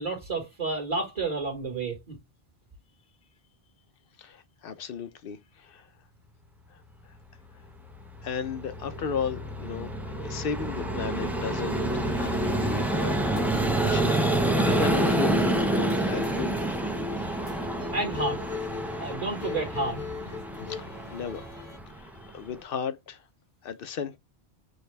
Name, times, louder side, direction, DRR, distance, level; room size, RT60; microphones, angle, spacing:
voice 1, 0.0-2.2 17.9-18.4 19.0-20.0, right 3 dB, 40° right, 1.6 m, -30 dB
voice 2, 4.2-5.9 6.7-6.8 8.2-9.9 10.2-16.8 20.7-21.5 21.9-23.2 23.6-24.2, left 6 dB, 60° left, 0.8 m, -35 dB
Vehicle, 7.9-22.6, right 1 dB, ahead, 0.4 m, -28 dB
sound 1, 11.7-21.8, left 5 dB, 85° left, 1.7 m, -41 dB
6.4 x 2.3 x 3.2 m
omnidirectional pair, 1.1 m